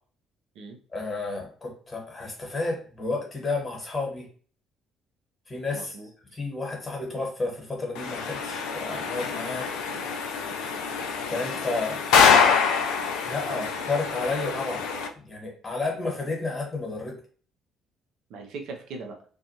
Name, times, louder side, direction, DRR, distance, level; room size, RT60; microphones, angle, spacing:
voice 1, 0.9-4.3 5.5-5.9 6.3-9.7 11.3-12.0 13.3-14.8 15.2-17.2, left 3 dB, 30° left, 0 dB, 1.2 m, -31 dB
voice 2, 5.7-6.4 9.8-10.1 10.4-10.8 11.6-11.7 13.5-13.7 18.3-19.2, right 3 dB, 60° right, 3 dB, 0.6 m, -41 dB
sound 1, 8.0-15.1, left 6 dB, 65° left, 0.3 m, -25 dB
2.5 x 2.3 x 2.7 m, 0.44 s
figure-of-eight pair, 45°, 0 cm